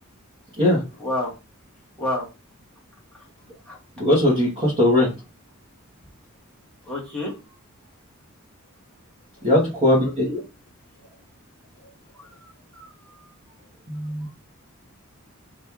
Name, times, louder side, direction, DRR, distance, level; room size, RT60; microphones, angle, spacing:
voice 1, 1.0-1.3 2.0-2.2 3.7-3.8 6.8-7.3 12.1-13.3 14.2-14.3, left 2 dB, 5° left, -5 dB, 1.3 m, -30 dB
voice 2, 4.0-5.1 9.4-10.4 13.9-14.3, left 1 dB, 25° right, -7 dB, 1.1 m, -19 dB
2.9 x 2.6 x 3.5 m, 0.29 s
head